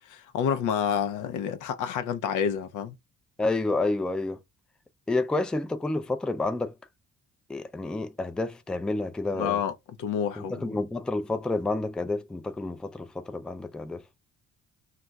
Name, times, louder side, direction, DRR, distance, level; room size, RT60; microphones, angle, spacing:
voice 1, 0.0-2.9 9.3-9.7 10.0-10.7, left 8 dB, 80° left, 0.6 m, -29 dB
voice 2, 3.4-4.4 5.1-6.7 7.5-9.6 10.4-14.0, left 2 dB, 5° left, 0.3 m, -29 dB
2.4 x 2.2 x 3.9 m
cardioid pair, 90°, 30 cm